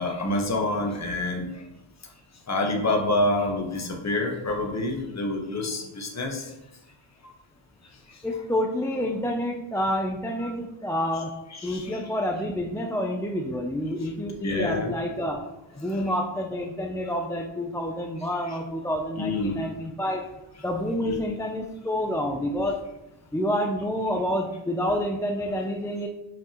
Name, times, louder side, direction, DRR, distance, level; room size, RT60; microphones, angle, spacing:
voice 1, 0.0-1.5 2.5-6.4 11.6-12.0 14.4-14.9 15.9-16.1 19.2-19.6 21.0-21.1, left 2 dB, 35° left, 1 dB, 1.2 m, -27 dB
voice 2, 8.2-11.3 11.6-15.4 15.8-20.2 20.6-22.8 23.3-26.1, equal, 5° left, 1 dB, 0.4 m, -28 dB
7.1 x 6.1 x 2.9 m, 0.91 s
wide cardioid pair, 150°, 47 cm